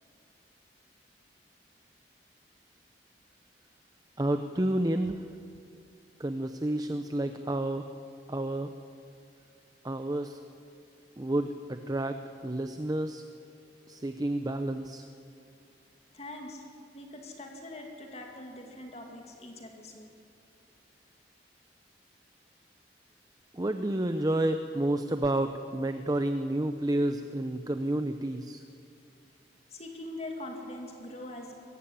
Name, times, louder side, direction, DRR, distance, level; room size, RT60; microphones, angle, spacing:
voice 1, 4.2-5.2 6.2-7.9 8.3-8.7 9.8-10.4 11.2-13.2 13.9-15.1 23.5-28.6, right 1 dB, 20° right, 8 dB, 0.7 m, -30 dB
voice 2, 16.1-20.1 29.7-31.5, left 1 dB, 35° left, 2 dB, 2.5 m, -43 dB
22.0 x 15.5 x 9.3 m, 2.5 s
head